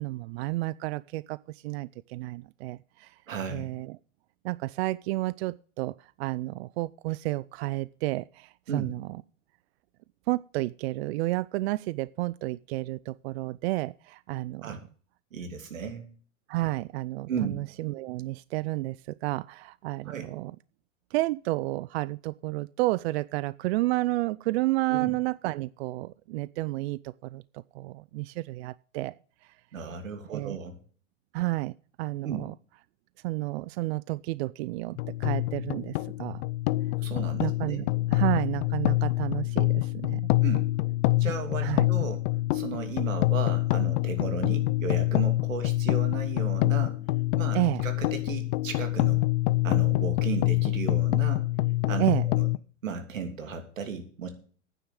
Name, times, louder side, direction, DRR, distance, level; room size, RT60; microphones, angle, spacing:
voice 1, 0.0-3.2 3.5-4.0 4.4-9.2 10.3-14.8 16.5-20.6 21.1-29.1 29.4-29.5 30.3-30.6 31.3-32.5 33.2-36.4 37.4-40.3 41.6-41.9 47.5-47.9 52.0-52.3, right 19 dB, 55° right, 0.4 m, -31 dB
voice 2, 3.3-3.7 8.7-8.9 14.6-14.8 15.3-16.1 17.3-17.6 20.0-20.3 24.9-25.1 29.7-30.8 32.2-32.4 37.0-37.9 40.4-40.7 41.2-42.2 42.5-47.0 47.4-49.2 49.6-51.5 51.9-52.5 52.8-54.3, right 6 dB, 85° right, 3.0 m, -35 dB
sound 1, 35.0-52.6, left 19 dB, 60° left, 0.6 m, -26 dB
9.4 x 7.0 x 9.0 m
hypercardioid pair, 115°, 38 cm